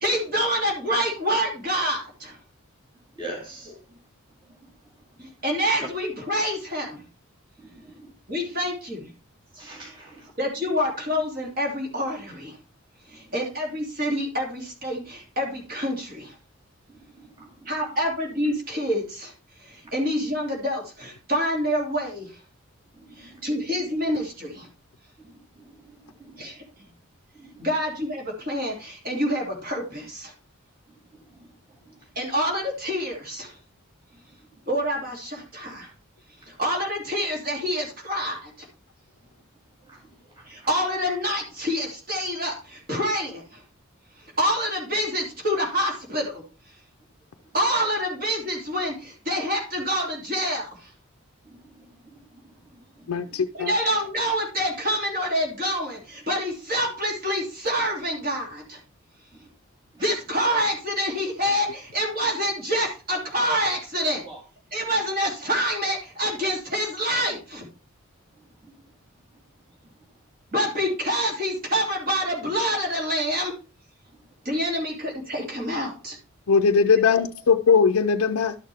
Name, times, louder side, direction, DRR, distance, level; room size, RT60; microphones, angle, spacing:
voice 1, 0.0-2.4 3.7-3.8 5.2-7.0 8.3-9.1 10.4-12.6 13.1-16.3 17.7-19.3 19.6-22.4 23.2-24.7 26.4-26.6 27.6-30.3 32.1-33.6 34.7-35.9 36.5-38.7 40.5-43.6 44.4-46.4 47.5-50.9 53.5-58.8 60.0-64.2 64.7-67.7 70.5-73.5 74.4-76.2 77.0-77.2, equal, 40° right, 2.8 m, -27 dB
voice 2, 3.2-3.7 7.6-8.1 9.5-10.3 17.2-17.5 23.0-23.5 25.2-25.3 25.9-26.4 27.4-27.7 39.9-40.0 51.5-51.9 52.3-52.4 53.1-53.2 64.3-64.4, right 2 dB, 20° right, 2.3 m, -42 dB
voice 3, 53.1-53.7 76.5-78.6, left 5 dB, 90° left, 0.5 m, -20 dB
12.0 x 6.5 x 3.5 m
head